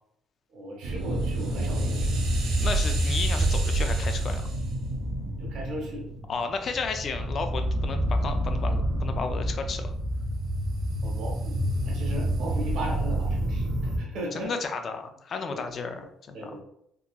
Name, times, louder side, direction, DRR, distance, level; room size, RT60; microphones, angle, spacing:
voice 1, 0.5-2.2 5.4-6.1 11.0-14.5 15.5-16.1 16.3-16.6, right 1 dB, 65° right, -1 dB, 1.2 m, -37 dB
sound 1, 0.8-14.0, right 1 dB, 85° right, 0.9 m, -28 dB
voice 2, 2.6-4.4 6.3-9.9 14.3-16.6, left 5 dB, 40° left, 7 dB, 0.4 m, -33 dB
3.7 x 2.9 x 2.3 m, 0.75 s
cardioid pair, 145°, 0 cm